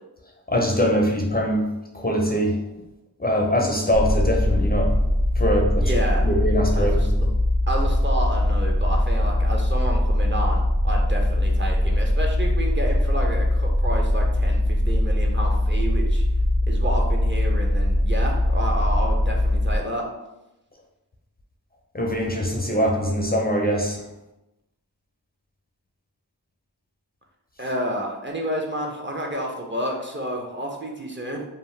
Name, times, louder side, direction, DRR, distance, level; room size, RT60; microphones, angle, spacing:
voice 1, 0.5-1.7 1.9-2.6 3.2-5.0 5.4-5.9 6.2-7.2 21.9-24.0, equal, 25° left, 0 dB, 0.5 m, -22 dB
sound 1, 3.9-19.8, left 1 dB, 65° right, 1.2 m, -21 dB
voice 2, 5.8-6.3 6.8-7.1 7.7-16.2 16.7-20.0 27.6-31.4, equal, 30° right, 0 dB, 0.5 m, -30 dB
2.7 x 2.0 x 3.1 m, 0.94 s
cardioid pair, 40°, 41 cm